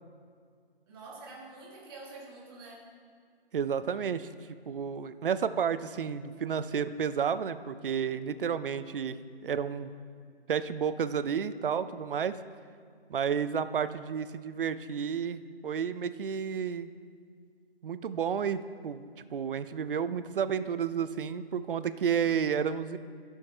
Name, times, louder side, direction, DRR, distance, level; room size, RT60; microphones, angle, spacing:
voice 1, 0.9-2.9, right 3 dB, 20° right, -4 dB, 1.7 m, -47 dB
voice 2, 3.5-4.3 4.7-9.2 9.4-9.9 10.5-12.3 13.1-16.9 17.8-19.0 19.3-23.0, right 7 dB, 60° right, 13 dB, 0.5 m, -31 dB
14.0 x 6.3 x 3.3 m, 2.1 s
hypercardioid pair, 160°, 31 cm